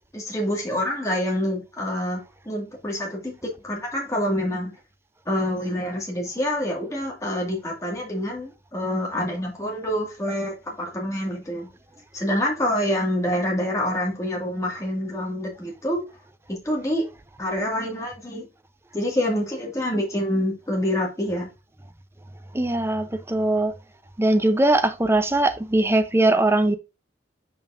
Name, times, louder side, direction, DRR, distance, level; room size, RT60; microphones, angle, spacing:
voice 1, 0.1-4.7 5.3-11.7 12.1-16.0 16.5-17.1 17.4-18.5 18.9-21.5, equal, 15° left, 1.9 m, -26 dB
voice 2, 22.5-23.7 24.2-26.8, right 2 dB, 15° right, 0.6 m, -20 dB
7.4 x 5.4 x 2.5 m
head